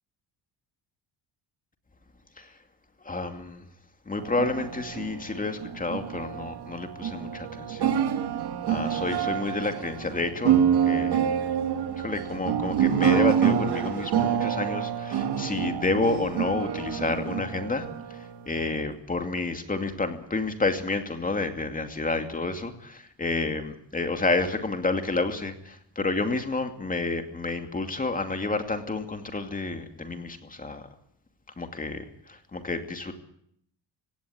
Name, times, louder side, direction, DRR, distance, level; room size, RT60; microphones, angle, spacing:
voice 1, 3.0-3.6 4.1-7.9 8.7-11.2 12.0-17.8 18.1-30.8 31.6-33.2, left 3 dB, 20° left, 6 dB, 2.5 m, -30 dB
sound 1, 4.2-18.9, right 9 dB, 60° right, 1.9 m, -27 dB
17.0 x 17.0 x 9.4 m, 0.69 s
cardioid pair, 120°, 44 cm